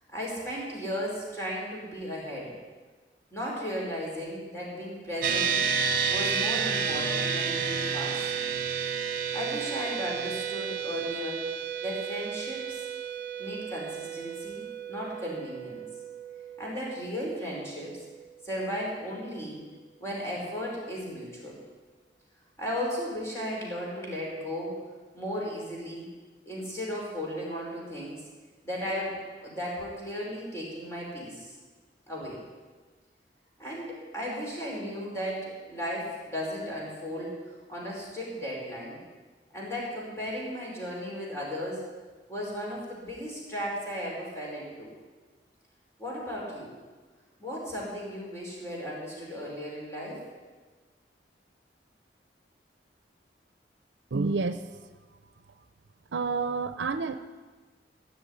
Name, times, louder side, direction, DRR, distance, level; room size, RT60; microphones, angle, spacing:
voice 1, 0.1-2.5 3.3-5.6 6.1-8.3 9.3-11.5 11.8-12.8 13.4-15.8 16.6-18.0 18.4-19.6 20.0-21.6 22.6-24.8 25.1-26.1 26.4-28.2 28.6-31.5 32.1-32.4 33.6-39.0 39.5-41.8 42.3-44.9 46.0-46.7 47.4-50.2, equal, 15° left, -4 dB, 4.9 m, -35 dB
sound 1, 5.2-18.8, right 6 dB, 50° right, 1.4 m, -32 dB
voice 2, 54.1-54.6 56.1-57.2, right 4 dB, 80° right, 11 dB, 0.6 m, -28 dB
16.0 x 6.4 x 10.0 m, 1.4 s
head